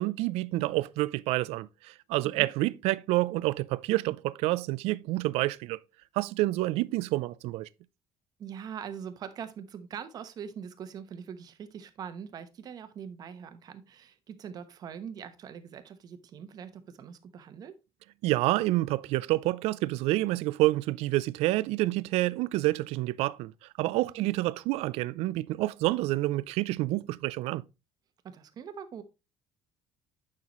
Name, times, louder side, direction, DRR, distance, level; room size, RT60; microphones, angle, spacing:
voice 1, 0.0-5.8 6.2-7.7 18.2-23.5 23.8-27.6, right 18 dB, 85° right, 0.4 m, -28 dB
voice 2, 8.4-17.8 24.0-24.3 28.2-29.0, right 7 dB, 40° right, 1.0 m, -42 dB
9.6 x 5.7 x 3.0 m
cardioid pair, 165°, 10 cm